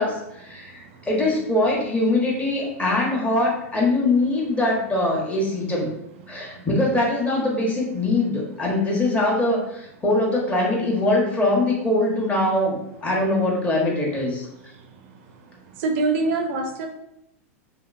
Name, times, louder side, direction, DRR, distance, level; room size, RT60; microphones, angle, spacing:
voice 1, 0.0-5.9 6.3-14.5, left 2 dB, 15° left, -3 dB, 1.0 m, -22 dB
voice 2, 15.8-16.9, right 3 dB, 55° right, 5 dB, 0.4 m, -23 dB
2.8 x 2.6 x 2.4 m, 0.83 s
hypercardioid pair, 105°, 8 cm